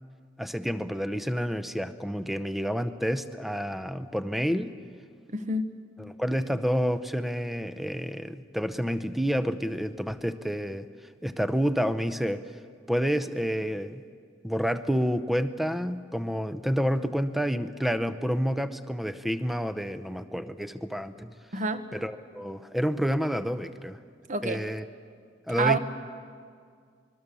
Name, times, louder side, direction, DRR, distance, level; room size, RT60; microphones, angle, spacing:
voice 1, 0.4-4.7 6.0-10.9 11.2-12.4 12.9-14.0 14.4-21.3 21.9-24.0 24.4-24.8 25.5-25.8, equal, ahead, 12 dB, 0.7 m, -29 dB
voice 2, 5.3-5.7 21.5-21.8 24.3-24.6 25.6-25.8, right 3 dB, 40° right, 9 dB, 1.2 m, -27 dB
25.5 x 22.0 x 7.0 m, 2.1 s
head